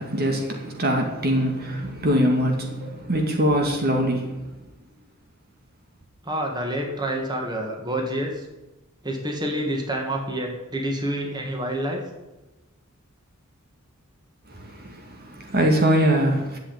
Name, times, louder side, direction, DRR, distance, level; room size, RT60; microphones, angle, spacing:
voice 1, 0.0-4.5 14.5-16.6, equal, 45° right, 2.2 m, -23 dB
voice 2, 6.2-8.5 9.0-12.0, right 1 dB, 20° right, 2.3 m, -28 dB
12.0 x 8.1 x 9.0 m
head